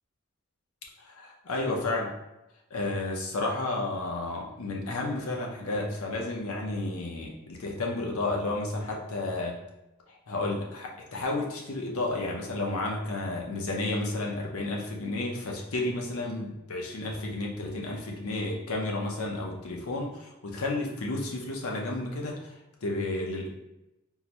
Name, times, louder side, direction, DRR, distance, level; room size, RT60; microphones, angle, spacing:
voice 1, 1.0-2.2 2.7-9.6 10.1-23.5, left 2 dB, 80° left, 0 dB, 0.7 m, -32 dB
3.8 x 2.0 x 2.8 m, 0.94 s
head